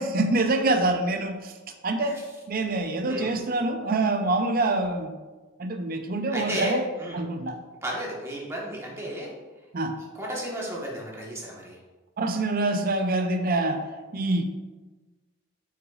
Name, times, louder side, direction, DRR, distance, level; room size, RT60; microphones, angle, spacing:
voice 1, 0.0-1.5 1.8-2.2 2.5-5.2 5.6-6.9 7.1-7.6 9.7-10.0 12.2-13.8 14.1-14.4, right 2 dB, 40° right, 6 dB, 0.5 m, -25 dB
voice 2, 3.0-3.4 6.3-6.7 7.0-7.2 7.8-9.3 10.1-11.8, right 1 dB, 10° right, -4 dB, 1.3 m, -33 dB
8.0 x 5.9 x 2.4 m, 1.3 s
head